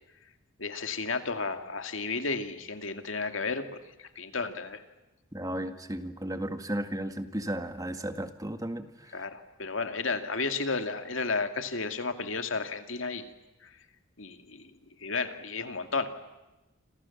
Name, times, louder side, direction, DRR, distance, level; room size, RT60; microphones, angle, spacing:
voice 1, 0.6-4.8 9.1-13.3 14.2-14.6 15.0-16.1, left 4 dB, 65° left, 7 dB, 2.5 m, -33 dB
voice 2, 5.3-8.9, right 1 dB, 15° right, 8 dB, 1.9 m, -34 dB
28.5 x 27.0 x 7.3 m, 1.0 s
head